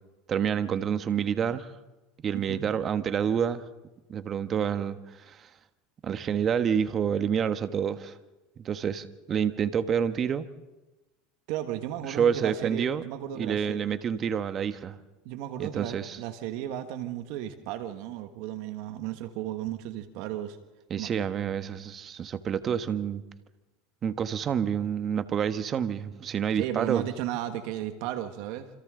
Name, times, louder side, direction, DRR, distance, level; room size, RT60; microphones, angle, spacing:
voice 1, 0.3-1.7 2.2-3.6 4.1-5.5 6.0-8.2 8.6-10.5 12.1-13.0 13.4-15.0 15.6-16.2 20.9-23.2 24.0-27.0, right 8 dB, 35° right, 11 dB, 1.2 m, -28 dB
voice 2, 2.3-2.6 11.5-13.8 15.2-20.6 21.0-21.1 26.5-28.7, right 12 dB, 65° right, 9 dB, 1.5 m, -34 dB
27.5 x 26.5 x 3.8 m, 1.1 s
supercardioid pair, 115°, 0 cm